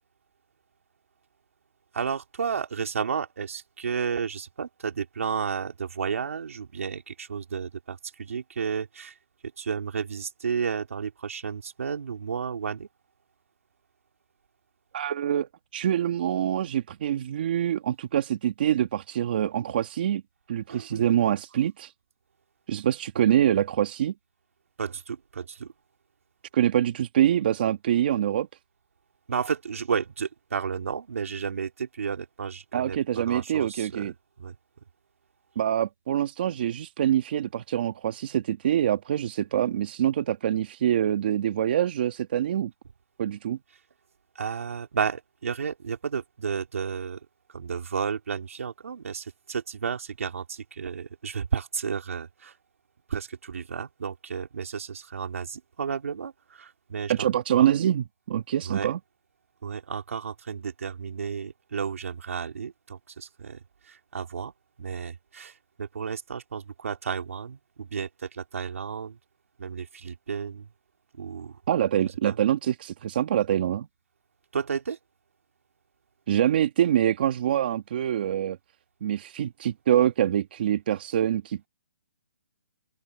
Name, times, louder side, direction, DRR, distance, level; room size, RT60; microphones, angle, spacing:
voice 1, 1.9-9.2 9.6-12.9 20.7-21.0 24.8-25.7 29.3-34.1 34.4-34.6 44.4-52.6 53.1-57.3 57.6-57.7 58.6-58.9 59.6-64.5 64.8-69.2 69.6-70.7 71.2-71.6 72.2-72.4 74.5-75.0, right 6 dB, 75° right, 3.6 m, -32 dB
voice 2, 14.9-20.2 20.5-21.9 22.7-24.1 26.5-28.5 32.7-34.1 35.5-42.7 43.2-43.6 57.1-59.0 71.7-73.9 76.3-78.6 79.0-81.7, right 10 dB, 40° right, 1.5 m, -25 dB
open air
hypercardioid pair, 170°, 8 cm